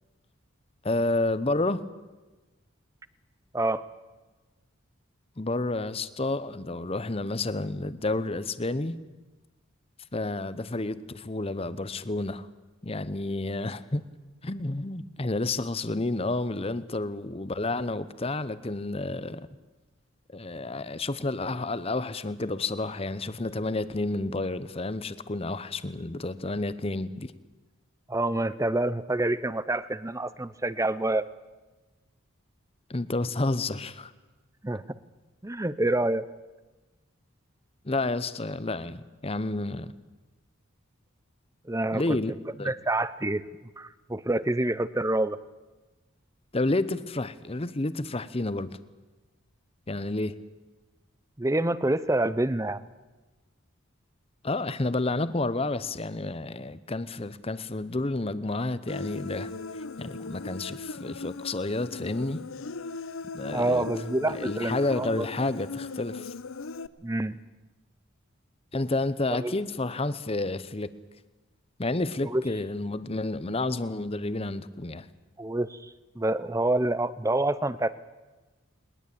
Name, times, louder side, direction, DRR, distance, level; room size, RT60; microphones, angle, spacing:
voice 1, 0.8-1.8 5.4-9.0 10.1-12.5 12.8-14.0 14.4-19.5 20.3-27.3 32.9-34.1 37.8-39.9 41.9-42.3 42.6-42.7 46.5-48.8 49.9-50.4 54.4-62.4 63.3-63.9 64.3-66.3 68.7-70.9 71.8-75.1, left 2 dB, 30° left, 15 dB, 0.8 m, -30 dB
voice 2, 3.5-3.9 28.1-31.3 34.6-34.8 35.4-36.3 41.7-42.2 42.6-43.4 43.8-45.4 51.4-52.8 63.5-65.3 67.0-67.4 69.4-69.5 72.2-72.4 75.4-78.0, right 2 dB, 15° right, 16 dB, 0.6 m, -27 dB
Human voice, 58.9-66.9, left 3 dB, 75° left, 0.7 m, -38 dB
21.0 x 20.0 x 8.6 m, 1.2 s
head